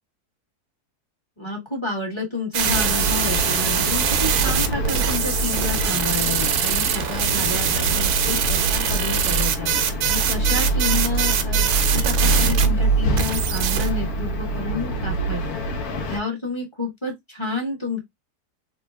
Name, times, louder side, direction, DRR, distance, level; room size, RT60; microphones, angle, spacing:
voice 1, 1.4-11.7 11.9-18.0, left 3 dB, 20° left, 1.1 m, -30 dB
sound 1, 2.5-12.7 13.2-13.9, right 8 dB, 75° right, 1.1 m, -23 dB
sound 2, 2.6-16.2, right 1 dB, 75° left, 1.2 m, -25 dB
3.3 x 2.1 x 3.4 m
omnidirectional pair, 1.7 m